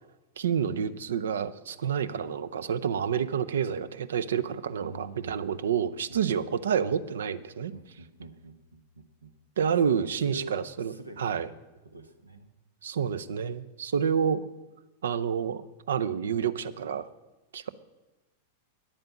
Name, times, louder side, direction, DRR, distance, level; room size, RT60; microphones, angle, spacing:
voice 1, 0.4-7.7 9.6-11.5 12.8-14.4 15.0-17.1 17.5-17.7, right 7 dB, 70° right, 16 dB, 0.5 m, -29 dB
voice 2, 4.8-5.4 6.1-6.5 7.7-9.4 9.8-11.5 11.8-12.5, right 2 dB, 85° right, 10 dB, 1.0 m, -45 dB
10.0 x 8.7 x 7.1 m, 1.1 s
figure-of-eight pair, 95°, 0 cm